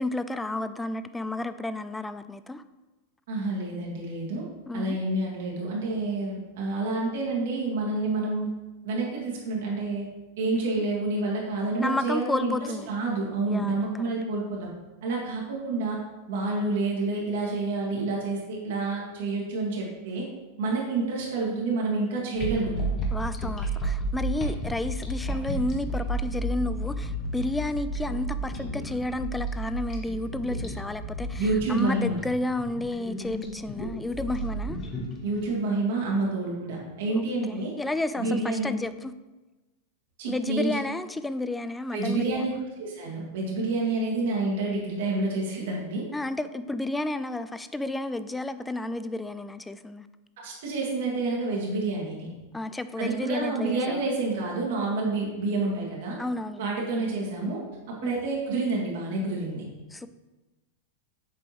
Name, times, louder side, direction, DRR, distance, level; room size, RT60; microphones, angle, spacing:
voice 1, 0.0-2.6 4.7-5.0 11.8-12.9 13.5-13.9 23.1-34.8 37.1-39.1 40.3-42.8 46.1-50.1 52.5-54.0 56.2-56.6 58.0-58.2 59.9-60.1, left 2 dB, 10° left, 12 dB, 0.3 m, -31 dB
voice 2, 3.3-4.4 4.7-8.5 8.8-10.0 10.4-12.5 12.9-14.7 15.0-16.0 16.3-20.2 20.6-23.0 31.4-32.2 35.2-37.7 38.2-38.8 40.2-40.7 41.9-42.5 42.8-46.0 50.4-52.3 53.0-56.2 56.6-57.6 57.9-59.6, right 3 dB, 55° right, -3 dB, 1.5 m, -28 dB
sound 1, 22.4-35.5, right 1 dB, 25° left, 1.2 m, -32 dB
7.5 x 5.1 x 3.0 m, 1.2 s
figure-of-eight pair, 90°, 0 cm